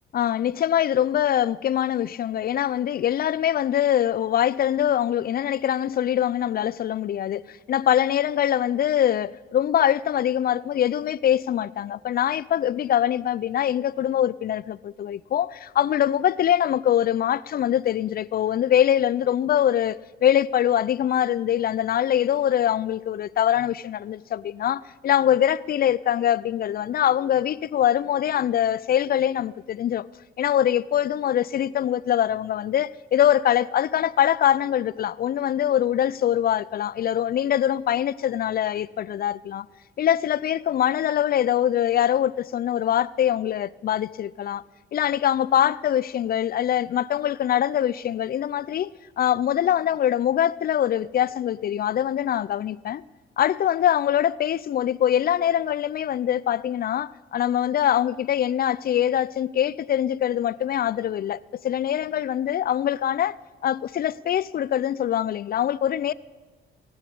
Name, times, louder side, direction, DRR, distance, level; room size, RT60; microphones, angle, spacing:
voice 1, 0.1-30.0 30.4-39.7 40.0-44.6 44.9-53.0 53.4-63.4 63.6-66.1, left 10 dB, 50° left, 0.4 m, -23 dB
18.5 x 6.3 x 8.4 m
cardioid pair, 90°, 20 cm